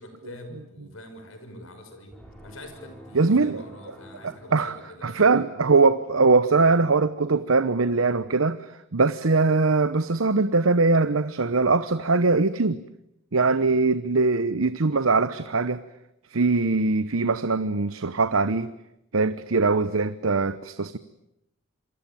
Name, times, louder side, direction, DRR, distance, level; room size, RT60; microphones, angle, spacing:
voice 1, 0.0-2.1 2.4-5.3 13.4-13.7, left 1 dB, 75° left, 7 dB, 6.2 m, -45 dB
sound 1, 2.1-5.4, equal, 5° left, 6.0 m, -48 dB
voice 2, 3.1-3.6 4.2-4.8 5.0-12.8 13.3-15.8 16.3-18.7 19.1-21.0, right 3 dB, 90° right, 13 dB, 1.0 m, -22 dB
27.5 x 23.5 x 9.2 m, 0.85 s
head